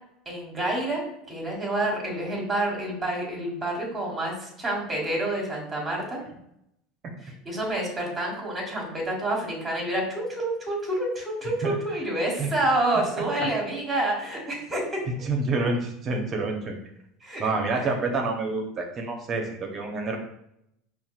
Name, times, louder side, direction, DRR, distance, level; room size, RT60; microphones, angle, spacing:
voice 1, 0.2-6.2 7.2-15.0 17.2-17.4 17.7-17.9, right 1 dB, 15° right, -1 dB, 1.5 m, -28 dB
voice 2, 15.2-16.8 17.4-20.2, right 3 dB, 40° right, 2 dB, 0.8 m, -28 dB
5.6 x 2.4 x 2.4 m, 0.78 s
supercardioid pair, 100°, 0 cm